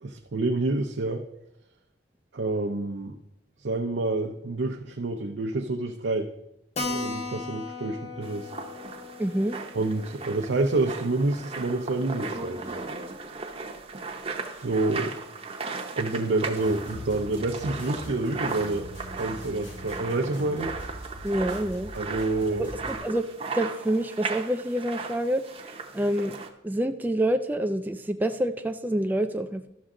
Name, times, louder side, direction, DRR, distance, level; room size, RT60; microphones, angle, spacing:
voice 1, 0.0-1.2 2.3-3.2 3.6-6.3 6.8-8.5 9.7-12.7 14.5-15.2 16.0-18.9 19.1-20.7 21.9-22.7, right 2 dB, 75° right, 2 dB, 0.6 m, -28 dB
Keyboard (musical), 6.8-11.8 12.1-12.2 12.5-12.6 12.8-12.9 13.5-13.8, left 3 dB, 35° left, 0.8 m, -38 dB
sound 1, 8.2-26.5, right 4 dB, 30° right, 0.7 m, -37 dB
voice 2, 9.2-9.6 21.2-21.9 22.5-25.4 25.9-26.4 26.6-29.7, right 1 dB, 10° right, 7 dB, 0.3 m, -27 dB
sound 2, 16.6-23.0, equal, 85° left, 3.6 m, -42 dB
12.5 x 6.3 x 3.7 m, 0.84 s
head